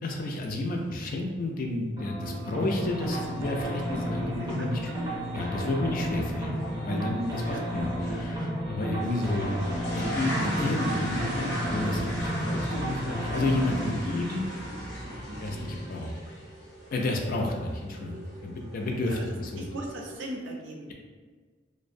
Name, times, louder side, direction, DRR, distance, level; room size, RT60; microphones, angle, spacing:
voice 1, 0.0-4.9 5.3-9.5 9.9-14.5 15.4-16.1 16.9-19.6, left 2 dB, 45° left, 1 dB, 0.3 m, -31 dB
sound 1, 2.0-16.1, equal, 20° right, 0.5 m, -33 dB
sound 2, 2.7-2.8 3.1-3.6 3.9-4.0 4.5-4.6 4.9-5.0 6.6-6.8 7.3-7.6 8.0-8.1 8.9-20.2, equal, 65° left, 0.8 m, -38 dB
voice 2, 7.5-8.1 19.1-19.2 19.6-20.9, right 1 dB, 75° right, 0 dB, 0.5 m, -39 dB
2.5 x 2.0 x 2.5 m, 1.5 s
head